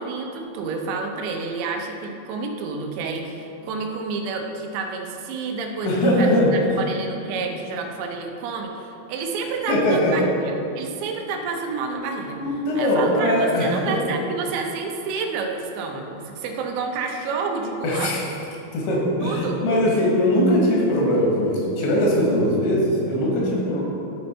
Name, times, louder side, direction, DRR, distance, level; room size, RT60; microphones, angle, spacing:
voice 1, 0.0-12.4 12.8-18.1 19.2-19.6 20.5-20.6, right 4 dB, 85° right, 3 dB, 3.1 m, -29 dB
voice 2, 5.8-6.5 9.7-10.3 12.4-14.0 17.8-18.2 18.7-23.8, equal, 80° left, -3 dB, 3.7 m, -20 dB
12.5 x 4.4 x 4.4 m, 2.7 s
omnidirectional pair, 5.0 m